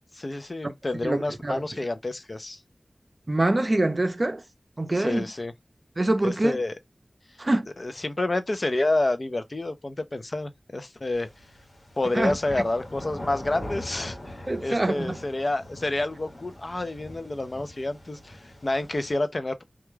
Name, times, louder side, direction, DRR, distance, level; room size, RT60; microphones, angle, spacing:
voice 1, 0.1-2.6 4.9-5.5 6.2-6.7 7.8-11.3 12.0-19.6, left 2 dB, 50° left, 0.5 m, -29 dB
voice 2, 1.0-1.6 3.3-4.4 4.8-5.2 6.0-6.6 7.4-7.7 12.1-12.3 14.5-15.2, right 2 dB, 45° right, 0.5 m, -24 dB
sound 1, 11.1-19.1, left 1 dB, 85° left, 1.1 m, -42 dB
2.3 x 2.1 x 3.1 m
wide cardioid pair, 70°, 0 cm